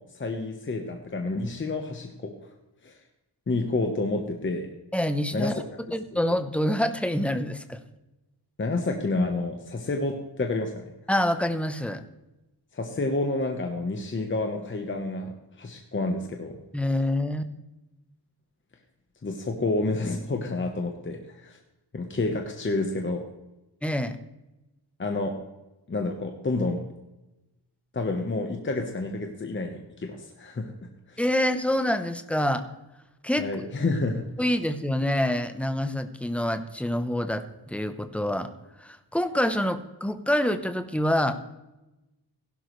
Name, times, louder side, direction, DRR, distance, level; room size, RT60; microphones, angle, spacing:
voice 1, 0.1-2.3 2.8-2.9 3.5-4.7 5.3-5.5 8.6-10.8 12.7-16.6 19.2-21.6 21.9-23.3 25.0-25.4 25.9-26.8 27.9-30.7 31.1-31.2 33.4-34.3, left 2 dB, 30° left, 3 dB, 1.0 m, -29 dB
voice 2, 4.9-5.5 5.9-7.8 11.1-12.0 16.7-17.4 23.8-24.2 31.2-32.6 33.2-33.5 34.4-38.5 38.8-41.4, left 1 dB, 5° left, 9 dB, 0.7 m, -26 dB
16.0 x 11.5 x 3.2 m, 0.99 s
wide cardioid pair, 175°, 41 cm